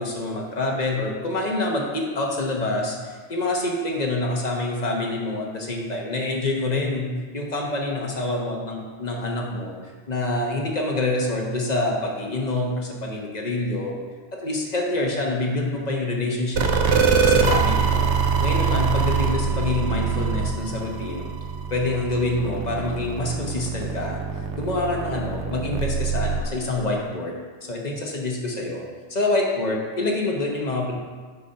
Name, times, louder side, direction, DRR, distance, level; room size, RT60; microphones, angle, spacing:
voice 1, 0.0-13.9 14.3-16.9 17.2-18.1 18.4-21.3 21.7-28.8 29.1-30.9, left 2 dB, 40° left, -1 dB, 1.1 m, -26 dB
sound 1, 16.5-26.4, right 5 dB, 80° right, 1.0 m, -24 dB
6.7 x 4.2 x 5.5 m, 1.5 s
omnidirectional pair, 1.2 m